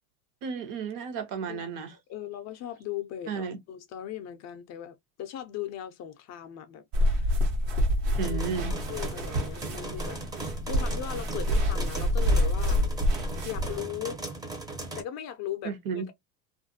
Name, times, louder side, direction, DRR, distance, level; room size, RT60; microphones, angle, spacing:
voice 1, 0.4-1.9 3.3-3.6 8.2-8.8 15.6-16.1, right 5 dB, 50° right, 0.9 m, -33 dB
voice 2, 2.1-7.3 8.2-8.4 8.9-10.2 10.7-12.9 13.4-14.2 14.9-15.7, left 11 dB, 40° left, 0.5 m, -38 dB
sound 1, 6.9-13.8, equal, 70° right, 1.1 m, -27 dB
sound 2, 8.2-15.0, right 2 dB, 10° right, 0.6 m, -38 dB
2.4 x 2.1 x 2.6 m
supercardioid pair, 110°, 43 cm